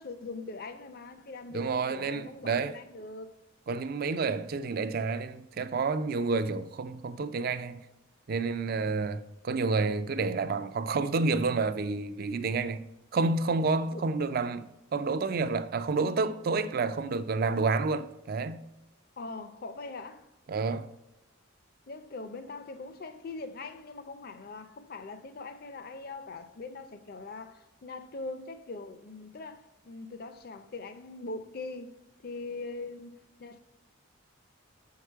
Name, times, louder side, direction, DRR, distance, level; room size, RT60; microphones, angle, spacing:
voice 1, 0.0-3.3 13.9-14.0 19.2-20.3 21.9-32.0 32.2-33.6, left 3 dB, 45° left, 0.5 m, -42 dB
voice 2, 1.5-2.8 3.7-7.8 8.3-12.8 13.1-14.6 14.9-18.7 20.5-20.9, right 4 dB, 45° right, 0.3 m, -29 dB
6.5 x 4.7 x 4.5 m
head